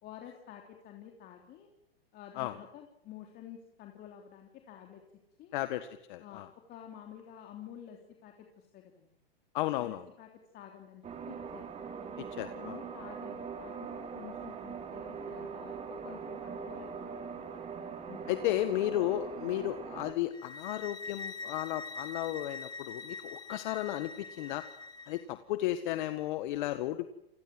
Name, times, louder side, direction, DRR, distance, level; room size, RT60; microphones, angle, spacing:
voice 1, 0.0-1.7 2.1-5.0 5.4-5.5 6.2-9.1 9.8-11.7 12.4-17.4 18.0-18.6, left 10 dB, 30° left, 2 dB, 3.4 m, -50 dB
voice 2, 5.5-6.5 9.5-10.0 12.2-12.8 18.3-24.6 25.1-27.1, left 14 dB, 50° left, 10 dB, 1.6 m, -34 dB
sound 1, 11.0-20.1, right 6 dB, 20° right, 3.6 m, -42 dB
sound 2, 20.3-25.2, left 4 dB, 15° left, 2.6 m, -44 dB
28.5 x 20.5 x 7.9 m, 0.83 s
hypercardioid pair, 135°, 31 cm